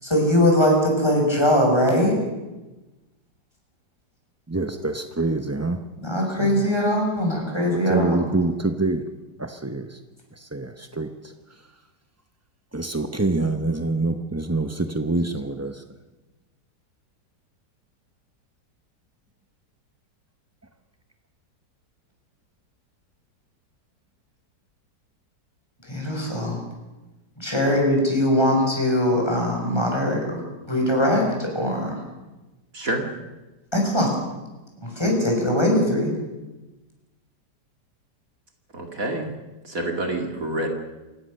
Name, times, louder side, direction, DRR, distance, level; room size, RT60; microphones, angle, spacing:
voice 1, 0.0-2.2 6.0-8.2 25.9-26.6 27.4-30.4 30.7-32.0 33.7-34.1 34.8-36.1, left 1 dB, 15° left, 0 dB, 6.6 m, -21 dB
voice 2, 4.5-5.8 6.4-6.7 7.9-9.0 9.4-10.0 10.4-11.3 12.7-15.8, right 2 dB, 15° right, 7 dB, 0.5 m, -26 dB
voice 3, 32.7-33.1 38.7-39.3 39.6-40.7, right 1 dB, 50° right, 3 dB, 2.8 m, -27 dB
28.0 x 16.5 x 6.6 m, 1.1 s
omnidirectional pair, 1.9 m